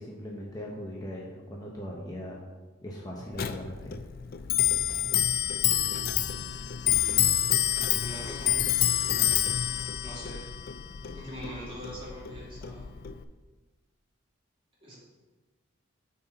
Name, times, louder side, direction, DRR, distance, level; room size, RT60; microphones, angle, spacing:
voice 1, 0.0-2.4 2.8-3.9, equal, 20° left, -3 dB, 0.7 m, -39 dB
Clock, 3.3-13.2, left 11 dB, 45° left, 0.3 m, -28 dB
voice 2, 5.7-6.0 6.8-7.4 8.0-8.6 9.0-9.6 10.0-10.5 11.1-12.9 14.8-15.0, right 1 dB, 25° right, -7 dB, 2.3 m, -43 dB
9.1 x 4.2 x 4.1 m, 1.2 s
head